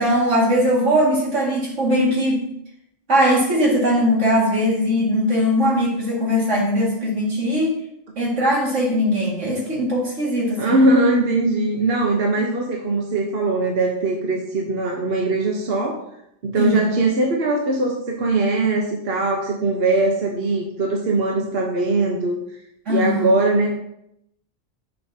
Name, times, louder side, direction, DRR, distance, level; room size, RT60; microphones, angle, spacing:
voice 1, 0.0-2.4 3.1-7.8 8.2-10.8 16.6-16.9 22.9-23.3, equal, 75° right, -3 dB, 2.5 m, -20 dB
voice 2, 10.6-16.0 16.4-22.4 22.9-23.7, right 2 dB, 55° right, 0 dB, 1.2 m, -21 dB
10.0 x 5.7 x 2.8 m, 0.77 s
omnidirectional pair, 1.3 m